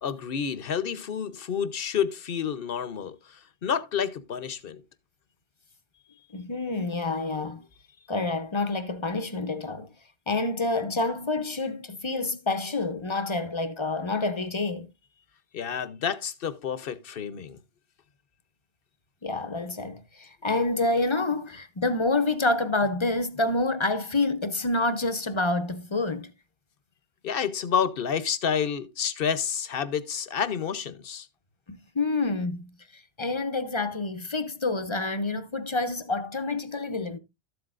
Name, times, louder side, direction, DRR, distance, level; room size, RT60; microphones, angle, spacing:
voice 1, 0.0-4.8 15.5-17.6 27.2-31.3, left 7 dB, 60° left, 1.0 m, -29 dB
voice 2, 6.3-7.6 8.1-9.9 10.3-14.9 19.2-26.3 31.7-37.2, left 2 dB, 30° left, 0.7 m, -28 dB
13.5 x 8.0 x 2.5 m
omnidirectional pair, 1.1 m